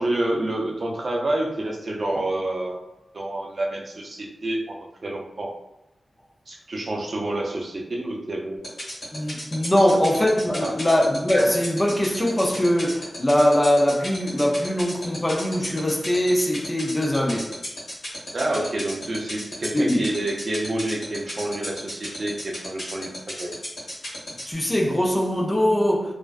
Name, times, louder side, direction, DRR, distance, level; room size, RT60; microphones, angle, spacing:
voice 1, 0.0-2.9 3.1-5.5 6.5-8.7 9.9-10.0 10.6-10.7 18.3-23.1 23.4-23.5, right 1 dB, 55° right, 0.5 m, -28 dB
sound 1, 8.6-24.5, left 1 dB, 85° left, 1.1 m, -34 dB
voice 2, 9.1-17.5 19.7-20.1 24.5-26.1, equal, 20° left, 0.4 m, -21 dB
2.4 x 2.1 x 2.3 m
wide cardioid pair, 80°, 0 cm